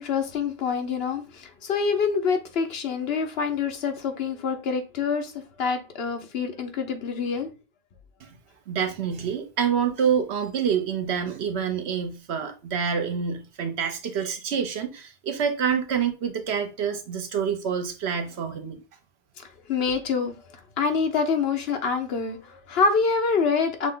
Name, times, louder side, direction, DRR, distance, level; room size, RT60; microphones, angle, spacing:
voice 1, 0.0-7.5 19.4-20.3 20.8-23.9, left 5 dB, 70° left, 1.0 m, -26 dB
voice 2, 8.7-18.8, right 7 dB, 90° right, 1.1 m, -27 dB
6.1 x 2.1 x 3.7 m
omnidirectional pair, 1.1 m